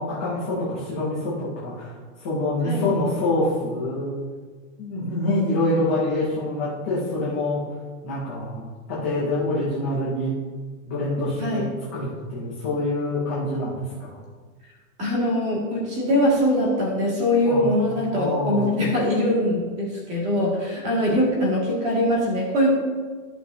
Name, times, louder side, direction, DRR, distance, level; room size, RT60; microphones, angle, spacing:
voice 1, 0.0-4.2 4.8-7.6 8.0-10.3 10.8-11.6 11.9-14.2 17.4-17.8 18.1-18.7, left 2 dB, 10° left, -9 dB, 0.4 m, -26 dB
voice 2, 15.0-22.7, left 1 dB, 15° right, -4 dB, 2.0 m, -22 dB
14.5 x 5.9 x 2.7 m, 1.5 s
supercardioid pair, 180°, 40 cm